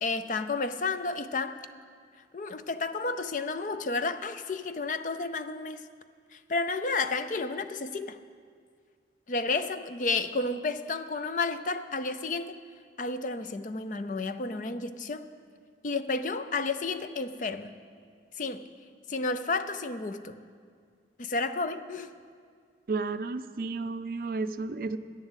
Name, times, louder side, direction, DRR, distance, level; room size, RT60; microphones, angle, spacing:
voice 1, 0.0-1.6 2.3-5.8 6.3-8.2 9.3-12.6 13.0-15.2 15.8-17.8 18.4-18.7 19.1-20.4 21.2-22.1, left 3 dB, 45° left, 11 dB, 0.5 m, -31 dB
voice 2, 22.9-25.0, right 3 dB, 55° right, 12 dB, 0.4 m, -32 dB
11.0 x 9.7 x 8.1 m, 2.1 s
head